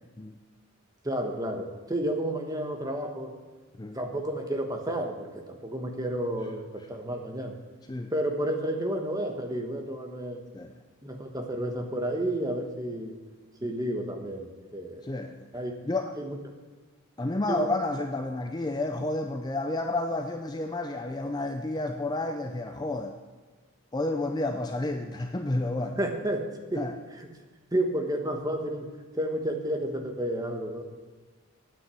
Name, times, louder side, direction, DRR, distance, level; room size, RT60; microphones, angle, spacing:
voice 1, 1.0-3.3 3.9-7.5 8.1-10.4 11.0-13.1 13.6-15.0 15.5-15.7 16.2-16.4 17.5-17.6 25.8-26.8 27.2-27.3 27.7-30.8, right 1 dB, 15° right, 3 dB, 1.2 m, -31 dB
voice 2, 15.0-15.5 15.9-16.1 17.2-23.2 23.9-26.0 26.8-27.0, left 2 dB, 20° left, 5 dB, 0.4 m, -30 dB
9.3 x 8.7 x 7.0 m, 1.4 s
head